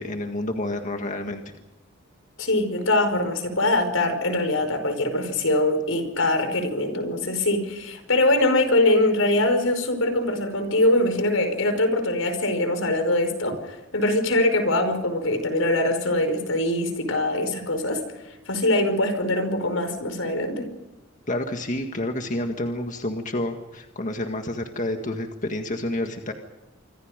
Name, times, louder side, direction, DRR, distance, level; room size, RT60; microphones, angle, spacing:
voice 1, 0.0-1.4 21.3-26.3, left 1 dB, 40° left, 4 dB, 1.9 m, -29 dB
voice 2, 2.4-18.0 18.5-20.7, left 1 dB, 80° left, 8 dB, 5.2 m, -23 dB
26.5 x 25.5 x 5.2 m, 1.1 s
head